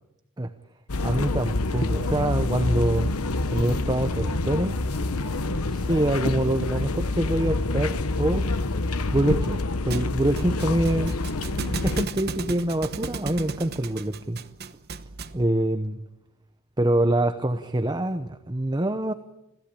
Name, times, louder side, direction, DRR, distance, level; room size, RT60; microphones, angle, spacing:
sound 1, 0.9-12.1, left 2 dB, 85° left, 1.2 m, -27 dB
voice 1, 1.0-3.1 3.5-4.8 5.5-8.5 9.1-11.1 11.7-14.4 15.3-16.0 16.8-19.1, right 1 dB, 20° right, 9 dB, 0.9 m, -25 dB
Thump thud, 9.9-15.5, right 3 dB, 45° right, 1.0 m, -35 dB
26.5 x 16.5 x 8.6 m, 0.90 s
head